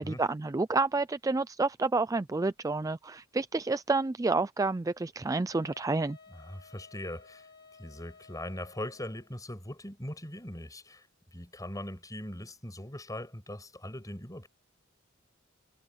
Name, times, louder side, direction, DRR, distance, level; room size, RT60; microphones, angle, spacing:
voice 1, 0.0-6.2, right 3 dB, 15° right, 0.4 m, -29 dB
Wind instrument woodwind instrument, 5.5-9.3, left 4 dB, 55° left, 5.4 m, -56 dB
voice 2, 6.3-7.5 7.8-11.1 11.3-14.5, left 1 dB, 15° left, 6.5 m, -40 dB
head